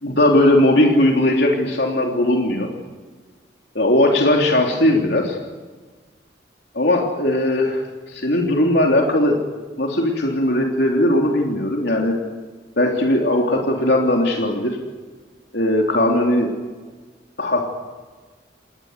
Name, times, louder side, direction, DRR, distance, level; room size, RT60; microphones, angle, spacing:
voice 1, 0.0-2.7 3.7-5.4 6.7-9.4 9.8-12.1 12.8-14.7 15.5-16.5 17.4-17.7, left 1 dB, 65° left, 0 dB, 3.3 m, -18 dB
29.5 x 19.5 x 8.2 m, 1.4 s
head